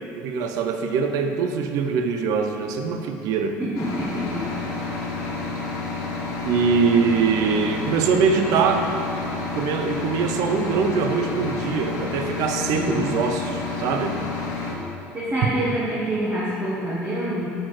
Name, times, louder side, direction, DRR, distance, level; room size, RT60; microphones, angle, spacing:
voice 1, 0.1-3.6 6.4-8.9 9.5-14.2 14.7-14.8, right 5 dB, 65° right, 6 dB, 0.5 m, -23 dB
voice 2, 3.6-4.7 12.7-13.1 15.1-17.5, right 1 dB, 25° right, -7 dB, 1.3 m, -27 dB
sound 1, 3.8-14.7, left 3 dB, 60° left, 1.1 m, -30 dB
5.8 x 4.3 x 4.7 m, 2.6 s
supercardioid pair, 80°, 6 cm